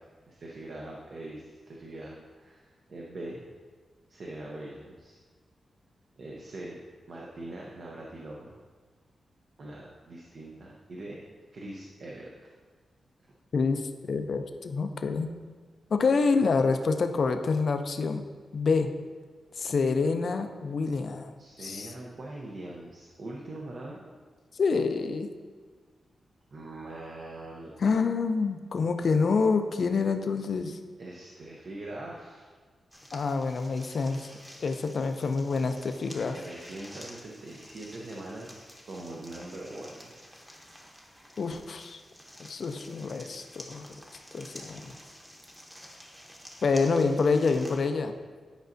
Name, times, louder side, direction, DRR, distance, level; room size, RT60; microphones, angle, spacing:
voice 1, 0.3-3.4 4.1-5.2 6.2-6.8 7.1-8.5 9.6-11.2 11.5-12.3 21.4-24.2 26.5-27.7 31.0-32.5 36.3-40.1, right 2 dB, 50° right, -3 dB, 0.7 m, -42 dB
voice 2, 13.5-15.3 15.9-18.2 18.5-18.9 19.6-21.3 21.6-21.9 24.5-25.3 27.8-30.8 33.1-34.3 34.6-36.4 41.4-42.0 42.4-43.9 44.3-45.0 46.6-48.1, left 4 dB, 55° left, 7 dB, 0.5 m, -27 dB
sound 1, 32.9-47.8, equal, 5° right, 0.9 m, -49 dB
10.0 x 5.3 x 2.6 m, 1.5 s
wide cardioid pair, 145°, 0 cm